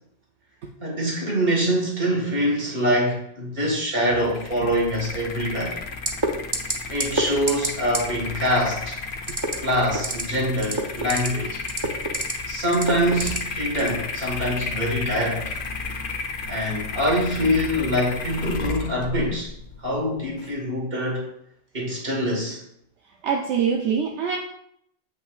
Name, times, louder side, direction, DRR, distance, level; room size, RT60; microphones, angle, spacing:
voice 1, 0.8-5.8 6.9-9.0 9.6-11.6 12.4-15.4 16.5-19.5 19.8-21.3 21.7-22.6, equal, 55° right, -2 dB, 2.0 m, -24 dB
sound 1, 4.2-20.5, left 4 dB, 55° left, 0.8 m, -33 dB
sound 2, 6.1-6.3 6.5-6.7 7.0-7.2 7.5-7.7 7.9-8.0 9.2-9.5 9.9-10.2 10.6-11.3 11.6-12.3 12.7-13.4 13.8-14.0, right 2 dB, 25° right, 0.6 m, -25 dB
voice 2, 23.2-24.4, right 6 dB, 80° right, 1 dB, 1.0 m, -24 dB
7.9 x 5.8 x 2.4 m, 0.74 s
omnidirectional pair, 1.2 m